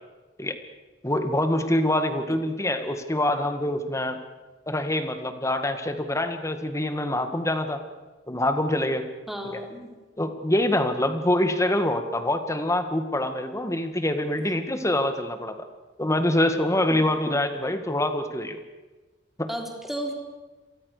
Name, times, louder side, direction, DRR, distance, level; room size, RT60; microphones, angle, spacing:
voice 1, 1.0-4.2 4.7-7.8 8.3-9.1 9.5-9.6 10.2-15.5 16.0-18.6 19.4-19.5, left 1 dB, 15° left, 8 dB, 1.9 m, -25 dB
voice 2, 9.3-9.9 16.9-17.0 19.5-20.1, equal, ahead, 1 dB, 4.0 m, -33 dB
29.0 x 23.5 x 6.8 m, 1.2 s
head